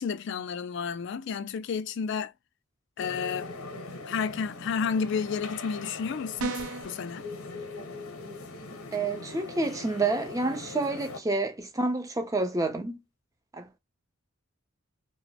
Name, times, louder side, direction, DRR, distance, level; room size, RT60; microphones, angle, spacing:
voice 1, 0.0-2.3 3.0-3.5 4.1-6.6 6.8-7.3, left 6 dB, 55° left, 0.3 m, -31 dB
sound 1, 3.0-11.4, left 3 dB, 85° left, 0.7 m, -41 dB
sound 2, 6.4-7.0, right 3 dB, 75° right, 0.5 m, -32 dB
voice 2, 8.9-13.0 13.5-13.8, right 3 dB, 15° right, 0.5 m, -29 dB
2.9 x 2.0 x 2.7 m
head